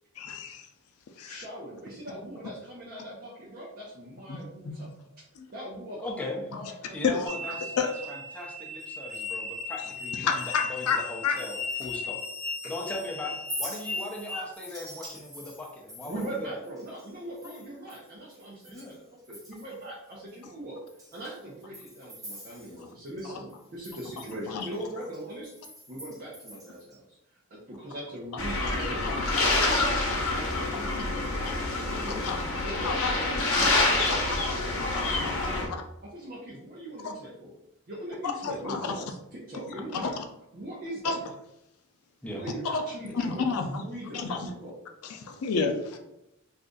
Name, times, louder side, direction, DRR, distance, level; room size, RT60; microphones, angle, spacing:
voice 1, 0.2-0.7 1.2-1.5 4.3-4.8 5.4-5.5 7.0-7.9 10.2-11.4 12.6-12.7 24.5-24.7 28.5-28.8 29.0-29.2 29.6-29.8 30.9-31.0 31.5-31.6 32.1-32.4 32.8-33.1 34.5-34.6 35.0-35.8 37.0-37.1 38.4-39.0 39.9-40.1 41.0-41.2 42.6-42.8 43.1-43.8 44.1-44.5 45.0-46.0, left 5 dB, 90° left, 4 dB, 0.4 m, -31 dB
voice 2, 1.3-4.9 5.5-7.0 7.3-7.4 16.1-20.8 21.1-25.5 25.9-27.2 27.5-29.7 30.3-32.2 32.6-34.3 34.6-35.7 36.0-37.5 37.9-40.1 40.5-41.1 42.2-43.5 43.8-44.7, right 1 dB, 45° right, -7 dB, 0.7 m, -41 dB
voice 3, 6.0-6.4 6.9-12.2 12.6-16.6 18.7-19.0 42.2-42.4, left 2 dB, 5° left, -2 dB, 0.5 m, -39 dB
sound 1, 7.3-14.4, left 3 dB, 65° right, 1.3 m, -37 dB
Chink clink, 13.3-19.0 19.2-19.9 20.3-20.4 20.9-23.2 23.5-27.0, equal, 15° right, 1.0 m, -44 dB
sound 2, 28.4-35.6, left 2 dB, 65° left, 0.7 m, -27 dB
2.5 x 2.3 x 3.7 m, 0.85 s
head